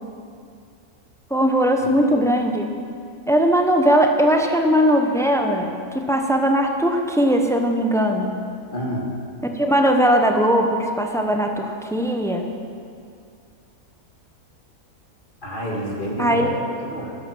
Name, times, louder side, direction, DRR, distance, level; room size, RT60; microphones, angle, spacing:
voice 1, 1.3-2.7 3.3-8.4 9.5-12.5 16.2-16.5, equal, 5° left, 3 dB, 0.6 m, -19 dB
voice 2, 8.7-9.1 15.4-17.2, equal, 35° left, -3 dB, 2.3 m, -28 dB
12.5 x 11.5 x 6.2 m, 2.3 s
omnidirectional pair, 1.6 m